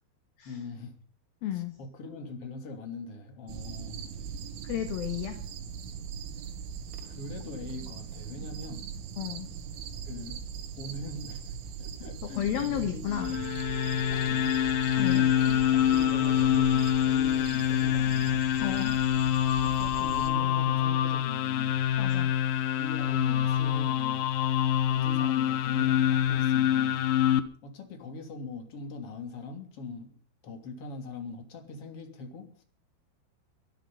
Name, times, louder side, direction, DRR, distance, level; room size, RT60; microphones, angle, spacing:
voice 1, 0.4-1.0 1.5-4.1 7.0-8.9 10.1-10.4 10.8-13.5 14.1-18.4 19.6-21.8 22.7-24.3 24.9-27.0 27.6-30.2 30.4-32.6, left 3 dB, 35° left, 5 dB, 3.3 m, -41 dB
voice 2, 1.4-1.8 4.6-5.4 9.2-9.5 12.3-13.3 15.0-15.3 18.5-19.0 22.0-22.4, left 11 dB, 65° left, 7 dB, 2.7 m, -32 dB
sound 1, 3.5-20.3, right 7 dB, 80° right, 4.3 m, -40 dB
sound 2, 13.1-27.4, left 11 dB, 85° left, 2.0 m, -26 dB
Wind instrument woodwind instrument, 13.2-17.5, right 9 dB, 40° right, 2.6 m, -42 dB
22.5 x 11.5 x 5.5 m, 0.43 s
omnidirectional pair, 5.7 m